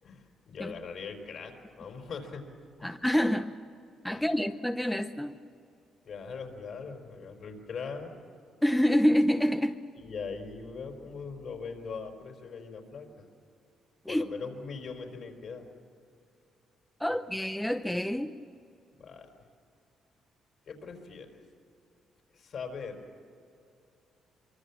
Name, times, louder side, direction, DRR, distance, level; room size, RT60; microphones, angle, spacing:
voice 1, 0.0-2.4 4.1-4.3 6.0-8.2 9.9-13.2 14.1-15.7 19.0-19.3 20.7-21.4 22.3-23.0, left 5 dB, 60° left, 3 dB, 4.8 m, -41 dB
voice 2, 2.8-3.6 4.0-5.4 8.6-9.8 14.0-14.3 17.0-18.3, equal, 5° left, 7 dB, 0.8 m, -27 dB
24.5 x 24.5 x 7.4 m, 2.5 s
cardioid pair, 90°, 0 cm